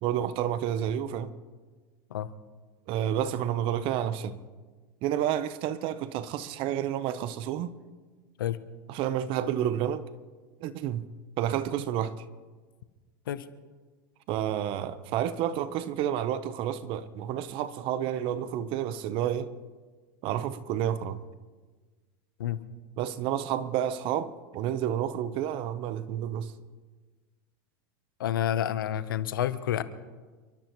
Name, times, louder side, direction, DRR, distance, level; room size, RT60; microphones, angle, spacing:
voice 1, 0.0-1.3 2.9-4.4 5.0-7.7 8.9-10.0 10.6-11.1 11.4-12.2 14.3-19.5 20.2-21.2 23.0-26.5, right 10 dB, 50° right, 1.0 m, -30 dB
voice 2, 28.2-29.8, left 11 dB, 85° left, 1.0 m, -29 dB
29.5 x 13.0 x 3.1 m
hypercardioid pair, 105°, 11 cm